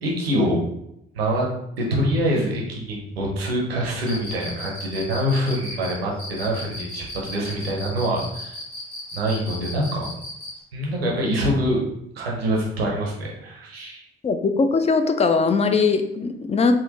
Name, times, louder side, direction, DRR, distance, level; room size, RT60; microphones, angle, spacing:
voice 1, 0.0-0.6 1.1-1.5 1.8-8.6 9.1-10.1 10.7-11.8 12.1-14.0, equal, 85° right, -2 dB, 0.6 m, -25 dB
Cricket, 4.0-10.6, left 1 dB, 70° left, 0.9 m, -35 dB
voice 2, 14.2-16.7, left 4 dB, 20° left, 7 dB, 0.4 m, -20 dB
3.5 x 2.1 x 2.8 m, 0.81 s
figure-of-eight pair, 40°, 30 cm